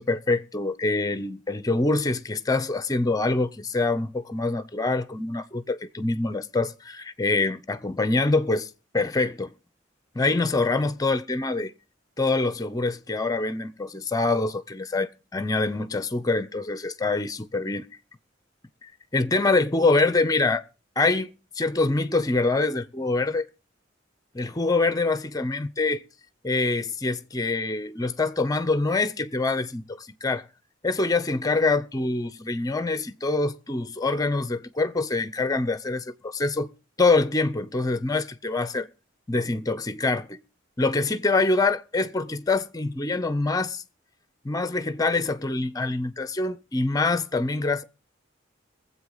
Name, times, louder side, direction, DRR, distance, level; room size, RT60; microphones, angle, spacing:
voice 1, 0.0-9.5 10.1-11.7 12.2-17.9 18.8-20.6 21.0-23.5 24.3-26.0 26.4-30.5 30.8-36.7 37.0-38.9 39.3-40.4 40.8-43.8 44.4-47.8, left 3 dB, 20° left, 0.6 m, -25 dB
22.0 x 7.9 x 3.9 m
head